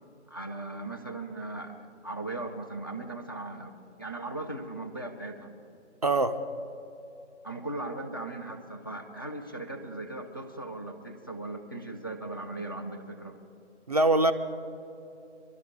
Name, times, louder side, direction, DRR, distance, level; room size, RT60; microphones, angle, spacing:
voice 1, 0.3-5.5 7.4-13.4, right 2 dB, 20° left, 0 dB, 0.5 m, -38 dB
voice 2, 6.0-6.4 13.9-14.3, right 2 dB, 35° right, 7 dB, 0.5 m, -22 dB
23.5 x 12.5 x 3.6 m, 2.8 s
figure-of-eight pair, 145°, 36 cm